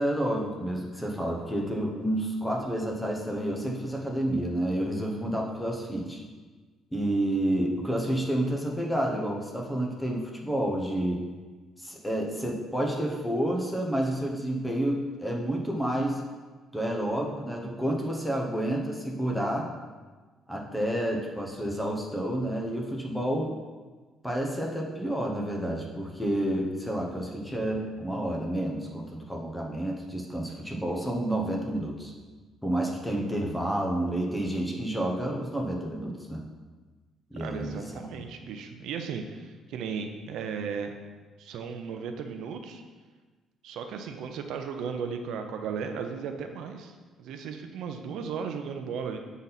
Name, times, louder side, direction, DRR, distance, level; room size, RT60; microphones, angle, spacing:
voice 1, 0.0-6.2 6.9-11.2 11.8-16.2 16.7-19.7 20.5-23.6 24.2-32.1 32.6-36.4 37.3-37.9, right 1 dB, 5° left, 0 dB, 0.8 m, -29 dB
voice 2, 37.4-40.9 41.4-42.8 43.6-49.2, right 6 dB, 75° right, 6 dB, 0.5 m, -36 dB
7.2 x 4.1 x 4.0 m, 1.4 s
cardioid pair, 155°, 0 cm